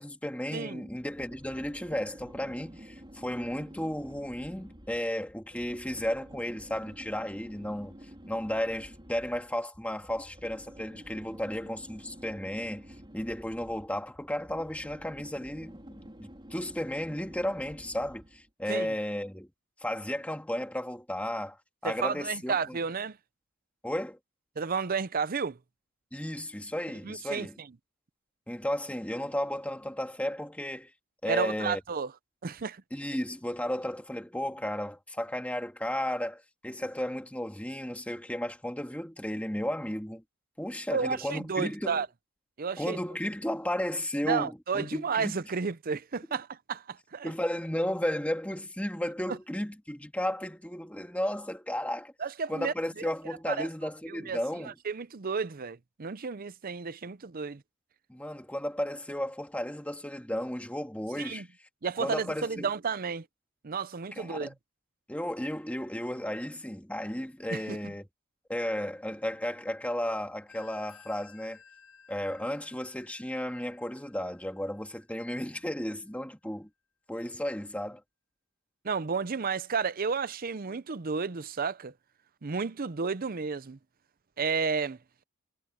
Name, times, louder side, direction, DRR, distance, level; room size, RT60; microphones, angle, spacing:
voice 1, 0.0-12.9 13.1-19.5 19.8-22.8 23.8-24.2 26.1-27.6 28.5-30.9 31.2-31.8 32.9-40.2 40.6-42.0 42.8-45.4 47.2-52.1 52.5-54.8 58.1-61.7 62.0-62.7 64.1-64.5 65.1-68.0 68.5-71.6 72.1-76.7 77.1-78.0, left 1 dB, 5° left, 2.0 m, -34 dB
voice 2, 0.5-0.8 18.7-18.9 21.8-23.2 24.6-25.6 27.0-27.5 31.3-32.1 32.4-32.8 40.9-42.1 42.6-43.0 44.2-47.3 52.2-52.7 53.5-53.7 54.1-54.4 54.9-57.6 61.2-61.4 61.8-63.3 63.6-64.5 67.5-67.9 78.8-81.9 82.4-83.8 84.4-85.0, right 5 dB, 40° right, 0.6 m, -32 dB
sound 1, 0.9-18.5, equal, 20° right, 3.9 m, -50 dB
Telephone, 70.5-75.8, left 7 dB, 75° left, 6.3 m, -57 dB
head